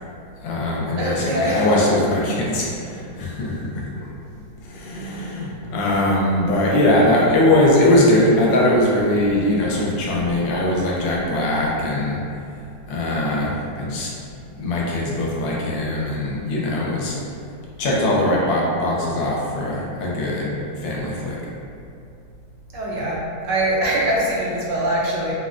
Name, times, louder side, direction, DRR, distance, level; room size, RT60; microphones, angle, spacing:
voice 1, 0.4-4.1 4.6-12.2 12.5-14.1 14.5-17.2 17.8-21.4, left 1 dB, 80° left, -4 dB, 1.2 m, -21 dB
voice 2, 1.0-1.7 22.7-23.2 23.4-25.3, right 1 dB, 75° right, -5 dB, 1.2 m, -22 dB
3.6 x 2.1 x 2.4 m, 2.5 s
omnidirectional pair, 2.1 m